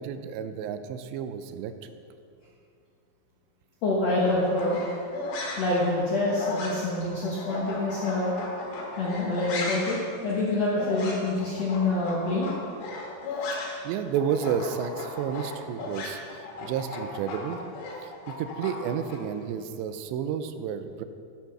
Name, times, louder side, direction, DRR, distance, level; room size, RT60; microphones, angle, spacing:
voice 1, 0.0-1.7 13.5-16.2 16.6-17.7 18.0-21.0, right 8 dB, 80° right, 10 dB, 2.7 m, -31 dB
voice 2, 3.8-4.8 5.6-8.3 9.0-12.6 13.6-13.7, left 2 dB, 85° left, -5 dB, 1.4 m, -26 dB
sound 1, 4.1-13.9 14.1-19.2, left 2 dB, 60° left, 3.3 m, -36 dB
11.0 x 8.9 x 6.0 m, 2.4 s
omnidirectional pair, 5.4 m